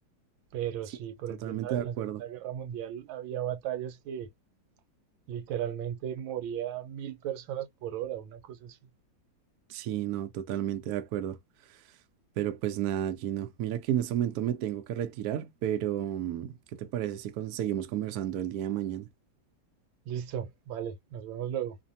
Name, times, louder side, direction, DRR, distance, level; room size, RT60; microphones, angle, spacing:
voice 1, 0.5-4.3 5.3-8.8 20.1-21.8, right 10 dB, 90° right, 1.4 m, -36 dB
voice 2, 1.3-2.2 9.7-11.4 12.4-19.1, right 11 dB, 70° right, 0.9 m, -32 dB
3.3 x 2.1 x 2.6 m
omnidirectional pair, 2.1 m